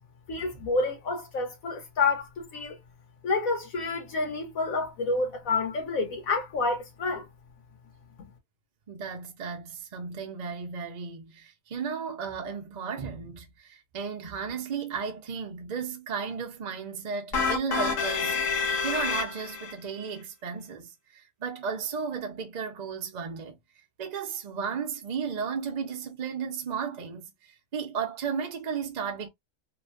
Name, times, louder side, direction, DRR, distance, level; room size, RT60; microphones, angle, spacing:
voice 1, 0.3-2.8 3.2-7.3 8.2-8.3, left 3 dB, 90° left, 1.5 m, -29 dB
voice 2, 8.9-23.6 24.0-29.3, right 6 dB, 50° right, 0.5 m, -34 dB
sound 1, 17.3-19.7, left 5 dB, 70° left, 1.1 m, -28 dB
3.1 x 2.1 x 2.4 m
omnidirectional pair, 1.4 m